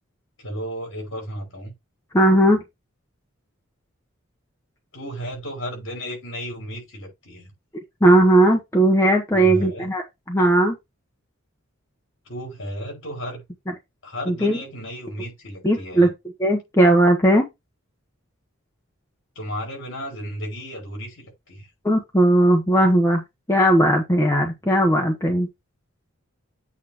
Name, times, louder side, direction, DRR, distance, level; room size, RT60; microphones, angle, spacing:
voice 1, 0.4-1.7 4.9-7.5 9.3-9.9 12.3-13.4 14.0-16.1 19.4-21.7, equal, 60° left, 5.5 m, -33 dB
voice 2, 2.1-2.6 8.0-10.8 14.3-14.6 15.6-16.1 16.4-17.4 21.8-23.2 23.5-25.5, right 1 dB, 15° left, 1.1 m, -17 dB
8.4 x 3.1 x 5.8 m
head